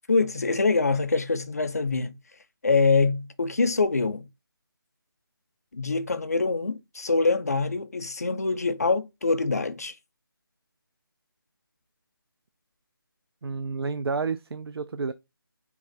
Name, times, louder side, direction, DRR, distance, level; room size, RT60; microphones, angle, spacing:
voice 1, 0.1-2.2 2.6-4.3 5.7-9.9, left 4 dB, 40° left, 0.4 m, -24 dB
voice 2, 13.4-15.1, right 4 dB, 90° right, 0.4 m, -30 dB
3.5 x 2.4 x 3.9 m
figure-of-eight pair, 175°, 12 cm